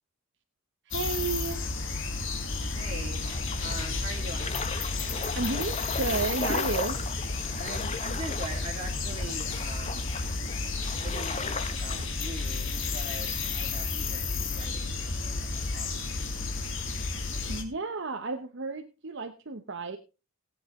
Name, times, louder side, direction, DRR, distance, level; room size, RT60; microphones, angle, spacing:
sound 1, 0.9-17.6, left 3 dB, 60° left, 2.2 m, -32 dB
voice 1, 0.9-1.6 5.3-7.0 17.5-20.0, right 3 dB, 55° right, 6 dB, 0.9 m, -32 dB
voice 2, 2.7-3.3 3.6-4.6 7.6-10.1 11.0-16.4, right 2 dB, 30° right, 0 dB, 3.0 m, -42 dB
sound 2, 3.2-12.1, left 4 dB, 30° left, 0.9 m, -37 dB
18.5 x 8.0 x 3.7 m, 0.30 s
head